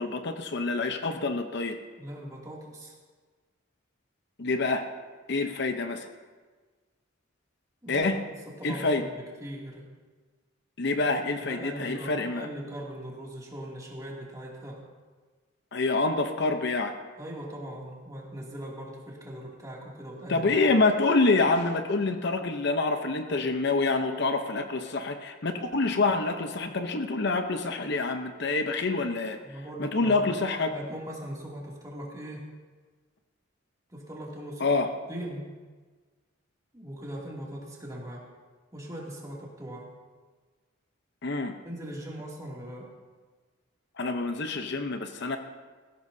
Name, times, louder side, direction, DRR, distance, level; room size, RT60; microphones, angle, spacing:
voice 1, 0.0-1.8 4.4-4.8 5.3-6.1 7.9-8.2 8.6-9.1 10.8-12.5 15.7-17.0 20.3-29.4 29.8-30.7 34.6-34.9 41.2-41.6 44.0-45.4, left 3 dB, 60° left, 7 dB, 0.8 m, -27 dB
voice 2, 1.9-3.0 7.8-8.1 8.5-9.8 11.4-14.8 17.2-20.6 29.4-30.3 30.7-32.4 33.9-34.7 35.1-35.4 36.7-38.3 38.7-39.9 41.6-42.9, right 1 dB, 15° right, -3 dB, 2.6 m, -40 dB
19.0 x 15.5 x 2.8 m, 1.4 s
head